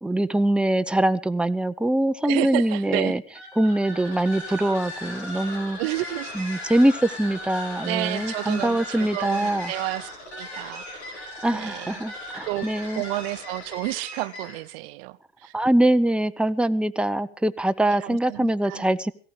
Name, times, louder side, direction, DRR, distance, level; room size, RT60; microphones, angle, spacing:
voice 1, 0.0-3.2 3.6-5.8 6.4-9.7 11.4-13.0 15.5-19.1, right 1 dB, 5° right, 11 dB, 0.9 m, -23 dB
voice 2, 2.2-3.2 5.8-6.3 7.8-11.0 11.5-12.0 12.5-12.7 13.0-15.5 17.8-18.9, right 19 dB, 65° right, 16 dB, 0.9 m, -31 dB
sound 1, 3.3-14.7, left 1 dB, 90° left, 5.2 m, -37 dB
18.0 x 15.5 x 5.0 m, 0.42 s
hypercardioid pair, 90°, 32 cm